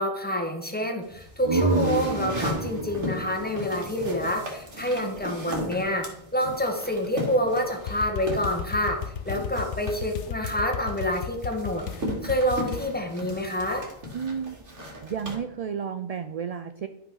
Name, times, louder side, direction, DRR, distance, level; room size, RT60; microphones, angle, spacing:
voice 1, 0.0-6.0 6.3-11.8 12.2-13.8, equal, 10° left, 3 dB, 1.7 m, -27 dB
sound 1, 1.0-15.4, equal, 85° right, 2.6 m, -37 dB
sound 2, 1.1-4.8, right 2 dB, 25° right, 1.0 m, -29 dB
sound 3, 7.8-12.9, left 8 dB, 85° left, 1.0 m, -35 dB
voice 2, 14.1-14.6 15.0-16.9, right 7 dB, 50° right, 10 dB, 0.4 m, -32 dB
12.0 x 5.6 x 5.5 m, 0.78 s
omnidirectional pair, 1.2 m